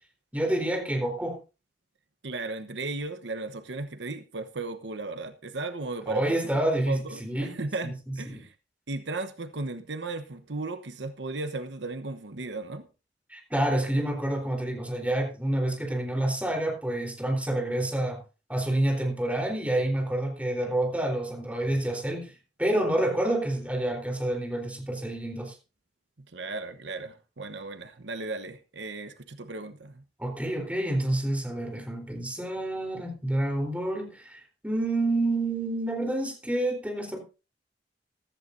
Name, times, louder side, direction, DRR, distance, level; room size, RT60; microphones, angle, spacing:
voice 1, 0.3-1.4 6.1-7.6 7.8-7.9 8.2-8.4 13.3-18.2 18.5-22.3 22.6-25.5 30.2-37.2, right 1 dB, 10° right, 4.0 m, -28 dB
voice 2, 2.2-6.6 6.9-8.5 8.9-12.9 26.3-30.0, right 3 dB, 85° right, 1.1 m, -35 dB
15.0 x 14.0 x 2.7 m
head